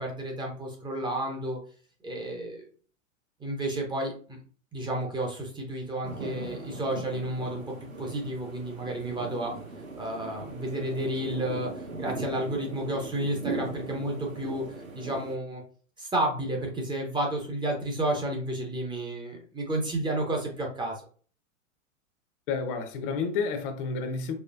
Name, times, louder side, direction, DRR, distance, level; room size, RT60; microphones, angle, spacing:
voice 1, 0.0-1.6 2.0-2.6 3.4-4.4 4.7-7.6 8.0-9.5 10.0-14.7 14.9-15.6 16.0-21.0, right 1 dB, 10° right, 0.8 m, -31 dB
sound 1, 6.0-15.3, right 3 dB, 80° right, 1.8 m, -39 dB
voice 2, 22.5-24.3, left 5 dB, 40° left, 0.8 m, -30 dB
4.3 x 3.0 x 2.4 m
hypercardioid pair, 105°, 40 cm